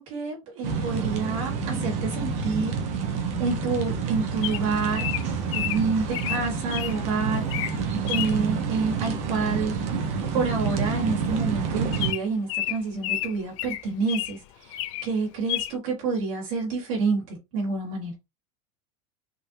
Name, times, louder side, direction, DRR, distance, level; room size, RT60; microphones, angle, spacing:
voice 1, 0.0-2.8 3.4-5.1 5.5-9.7 10.3-14.4 14.7-18.1, right 4 dB, 65° right, 1.7 m, -28 dB
sound 1, 0.6-12.1, right 5 dB, 40° right, 0.8 m, -28 dB
Bird vocalization bird call bird song, 4.4-7.0 7.4-7.8 8.1-8.4 9.8-10.1 10.3-10.4 10.7-10.9 11.3-11.4 11.9-14.4 14.7-15.1 15.5-15.7, left 14 dB, 55° left, 0.4 m, -31 dB
3.7 x 2.6 x 2.7 m
supercardioid pair, 155°, 18 cm